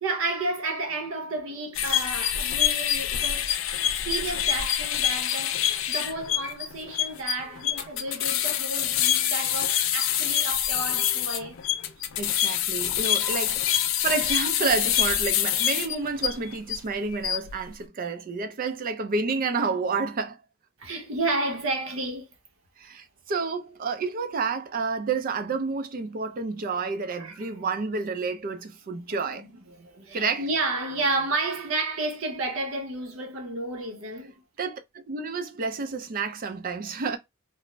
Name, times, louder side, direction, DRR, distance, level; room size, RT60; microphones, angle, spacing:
voice 1, 0.0-3.6 3.8-11.9 13.2-14.1 14.4-14.5 20.8-22.3 27.2-27.6 29.1-34.3, right 2 dB, 75° right, 0.9 m, -32 dB
sound 1, 1.7-16.8 17.1-17.5, left 10 dB, 70° left, 0.4 m, -26 dB
voice 2, 12.2-20.4 22.8-29.5 30.1-30.4 34.6-37.2, right 4 dB, 45° right, 0.4 m, -30 dB
2.5 x 2.0 x 3.0 m
head